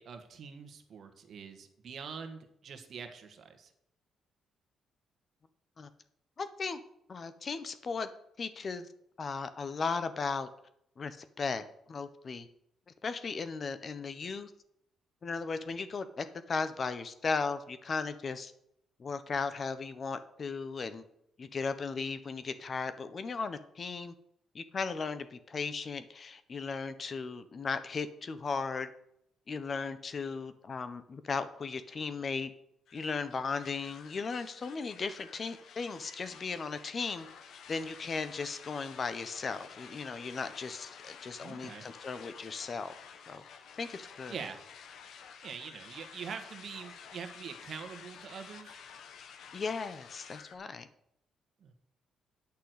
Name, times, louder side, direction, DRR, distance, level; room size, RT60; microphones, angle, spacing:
voice 1, 0.0-3.7 41.4-41.8 44.3-44.6 45.4-48.8 51.6-51.7, right 6 dB, 60° right, 7 dB, 1.5 m, -44 dB
voice 2, 6.4-6.8 7.1-8.1 8.4-8.9 9.2-10.5 11.0-11.6 11.9-12.5 13.0-14.5 15.2-18.5 19.0-21.0 21.4-24.1 24.5-28.9 29.5-32.5 32.9-37.3 37.7-42.9 43.3-43.4 43.8-44.4 49.5-50.9, left 4 dB, 40° left, 12 dB, 1.0 m, -36 dB
Talking Through your ass, 32.9-50.6, left 7 dB, 70° left, 1.1 m, -51 dB
8.6 x 6.1 x 8.1 m, 0.75 s
cardioid pair, 90°, 0 cm